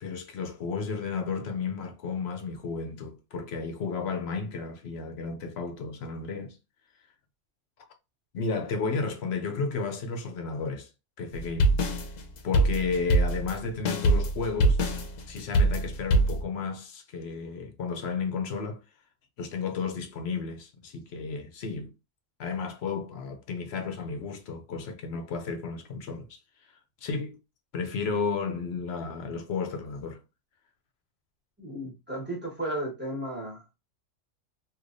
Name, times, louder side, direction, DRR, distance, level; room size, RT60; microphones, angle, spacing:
voice 1, 0.0-6.6 8.3-10.9 11.2-11.8 12.4-14.8 15.3-18.8 19.4-21.9 22.4-26.3 27.0-27.4 27.7-30.2, left 4 dB, 60° left, 0.9 m, -33 dB
sound 1, 11.3-16.4, right 1 dB, 85° left, 1.1 m, -24 dB
voice 2, 31.6-33.6, right 1 dB, 10° right, 1.3 m, -34 dB
3.2 x 3.0 x 2.5 m
omnidirectional pair, 1.3 m